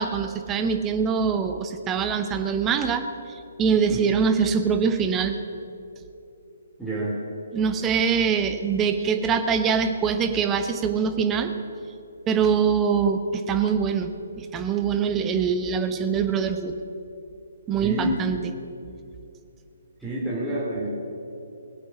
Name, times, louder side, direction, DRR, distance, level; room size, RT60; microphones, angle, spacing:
voice 1, 0.0-5.4 7.5-11.5 12.3-14.1 14.4-16.8 17.7-18.4, right 6 dB, 15° right, 7 dB, 0.9 m, -23 dB
voice 2, 6.8-7.1 17.8-18.2 20.0-21.0, right 1 dB, ahead, -10 dB, 3.2 m, -28 dB
21.0 x 8.4 x 6.2 m, 2.7 s
figure-of-eight pair, 135°, 0 cm